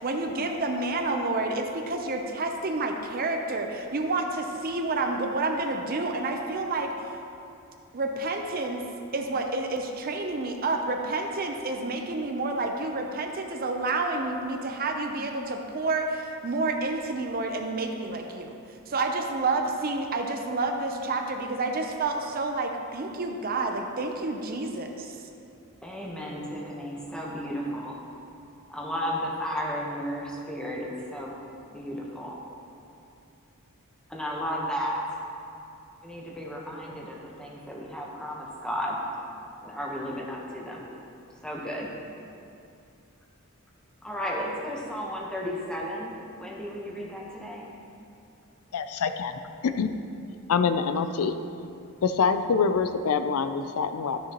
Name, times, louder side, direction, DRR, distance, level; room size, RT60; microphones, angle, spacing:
voice 1, 0.0-6.9 7.9-8.8 9.1-18.5 18.9-25.2, right 3 dB, 40° right, 4 dB, 0.6 m, -29 dB
voice 2, 25.8-28.0 28.7-31.3 31.7-32.4 34.1-35.1 36.0-39.0 39.6-40.9 41.4-41.9 44.0-47.7, equal, 5° left, -3 dB, 1.0 m, -33 dB
voice 3, 48.7-49.3 49.6-49.9 50.5-51.3 52.0-54.2, left 5 dB, 75° left, 9 dB, 0.4 m, -25 dB
12.5 x 6.7 x 3.0 m, 2.6 s
head